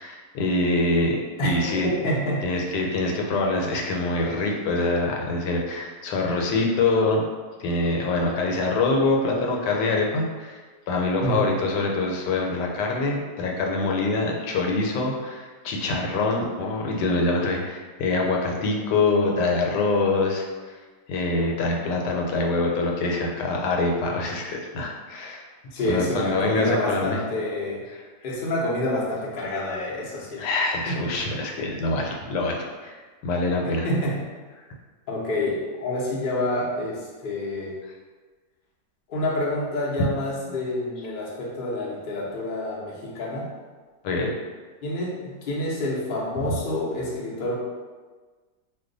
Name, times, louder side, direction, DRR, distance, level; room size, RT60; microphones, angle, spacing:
voice 1, 0.0-1.9 2.4-7.3 7.6-10.6 10.9-20.7 21.1-25.4 25.9-27.2 27.9-28.0 30.4-33.0 33.2-33.9 37.9-38.0 44.0-44.3 46.5-46.6, left 2 dB, 85° left, 0 dB, 1.2 m, -25 dB
voice 2, 2.0-2.4 9.4-9.5 11.2-11.4 25.7-27.8 28.2-30.4 30.9-31.0 33.8-34.2 35.1-37.8 39.1-43.5 44.8-47.5, left 1 dB, 60° left, -4 dB, 0.5 m, -27 dB
2.6 x 2.3 x 3.8 m, 1.4 s
omnidirectional pair, 1.8 m